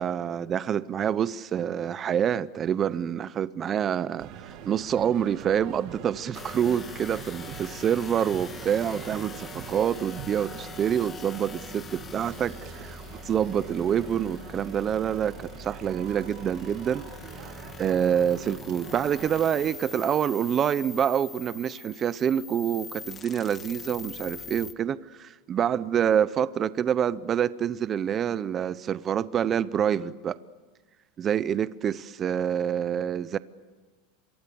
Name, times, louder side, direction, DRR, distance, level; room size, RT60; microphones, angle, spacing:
voice 1, 0.0-30.4 31.2-33.4, right 9 dB, 25° right, 0.7 m, -27 dB
sound 1, 4.2-19.8, right 9 dB, 50° right, 2.7 m, -44 dB
sound 2, 6.3-24.7, left 5 dB, 20° left, 1.1 m, -43 dB
27.5 x 24.0 x 7.0 m
supercardioid pair, 145°, 0 cm